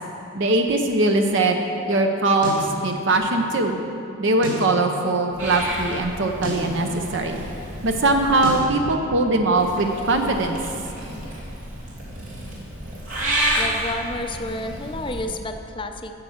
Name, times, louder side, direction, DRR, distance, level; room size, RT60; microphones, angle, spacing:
voice 1, 0.3-1.6 1.9-3.8 4.2-7.4 7.8-10.6, right 2 dB, 60° right, 4 dB, 0.7 m, -21 dB
sound 1, 2.4-2.7 4.4-4.7 6.4-6.7 8.4-8.7, left 1 dB, 40° right, 1.9 m, -30 dB
Purr / Meow, 5.4-8.6 9.6-15.2, right 1 dB, 75° right, 2.8 m, -30 dB
voice 2, 13.6-16.1, left 1 dB, 25° left, 6 dB, 0.5 m, -30 dB
9.5 x 8.0 x 7.2 m, 2.8 s
head